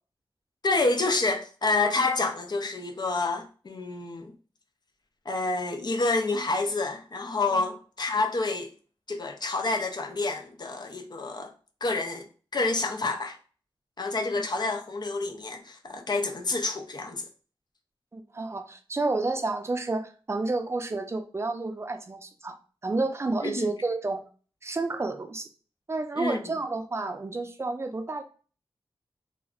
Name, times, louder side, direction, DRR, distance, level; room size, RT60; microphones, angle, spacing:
voice 1, 0.6-4.3 5.3-8.7 9.1-11.5 11.8-13.4 14.0-17.2 23.4-23.7 26.2-26.6, left 3 dB, 45° left, 0.5 m, -28 dB
voice 2, 18.1-22.5 22.8-24.2 24.6-25.5 25.9-28.2, right 3 dB, 25° right, 0.4 m, -30 dB
2.4 x 2.1 x 3.5 m
wide cardioid pair, 90°, 10 cm